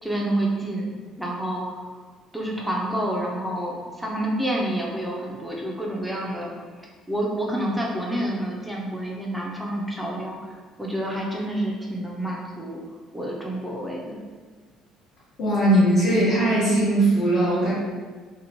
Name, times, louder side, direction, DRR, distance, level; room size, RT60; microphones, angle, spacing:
voice 1, 0.0-2.0 2.3-6.5 7.1-12.8 13.1-14.2, right 1 dB, ahead, -3 dB, 0.4 m, -28 dB
voice 2, 15.4-17.7, right 1 dB, 60° left, -14 dB, 1.0 m, -19 dB
2.7 x 2.1 x 2.8 m, 1.5 s
cardioid pair, 140°, 0 cm